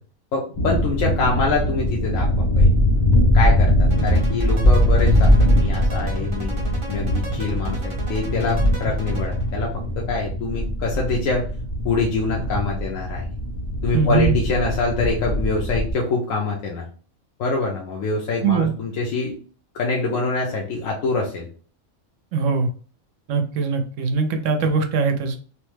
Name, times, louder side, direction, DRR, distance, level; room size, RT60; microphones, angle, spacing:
voice 1, 0.3-2.3 2.6-2.7 3.3-6.5 6.9-11.5 11.8-13.2 13.8-16.8 17.4-19.3 19.7-21.5, left 3 dB, 75° left, -1 dB, 1.0 m, -25 dB
sound 1, 0.5-15.9, equal, 30° left, 0.4 m, -21 dB
sound 2, 3.9-9.5, right 2 dB, 35° right, 0.5 m, -36 dB
voice 2, 13.9-14.4 18.4-18.7 22.3-22.7 23.3-25.3, right 5 dB, 70° right, 6 dB, 0.9 m, -21 dB
3.2 x 2.1 x 3.1 m, 0.41 s
omnidirectional pair, 1.5 m